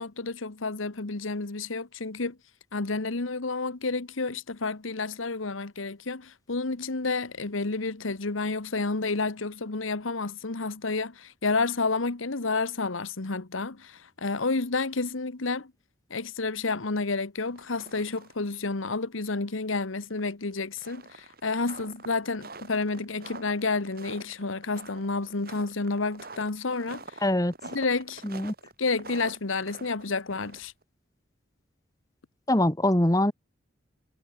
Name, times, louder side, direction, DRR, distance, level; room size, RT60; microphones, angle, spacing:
voice 1, 0.0-2.4 2.7-15.7 16.1-27.2 27.7-28.2 28.8-30.7, left 3 dB, 90° left, 1.3 m, -30 dB
sound 1, 17.4-18.5 18.7-18.8 19.2-19.3 20.1-30.8, right 3 dB, 50° right, 4.9 m, -46 dB
voice 2, 27.2-27.5 28.2-28.5 32.5-33.3, left 1 dB, 15° left, 1.4 m, -23 dB
head